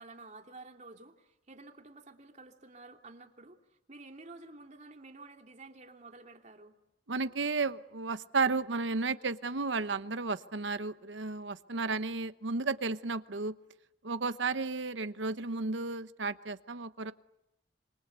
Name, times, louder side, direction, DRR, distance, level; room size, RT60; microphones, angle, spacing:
voice 1, 0.0-3.6 3.9-6.8, right 3 dB, 40° right, 3 dB, 2.9 m, -51 dB
voice 2, 7.1-13.5 14.0-17.1, right 4 dB, 80° right, 12 dB, 1.0 m, -33 dB
26.5 x 24.0 x 8.2 m, 0.86 s
head